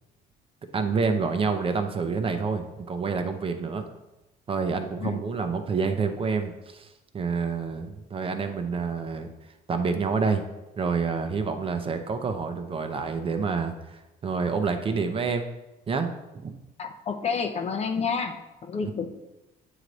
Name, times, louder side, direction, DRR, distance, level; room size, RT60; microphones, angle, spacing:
voice 1, 0.7-3.8 4.5-9.3 9.7-10.4 10.8-15.4 15.9-16.1 16.3-16.5 18.8-18.9, right 5 dB, 30° right, 7 dB, 0.6 m, -28 dB
voice 2, 16.8-18.4 18.7-19.1, left 5 dB, 40° left, 7 dB, 0.6 m, -29 dB
8.7 x 3.3 x 4.0 m, 0.99 s
cardioid pair, 110°, 17 cm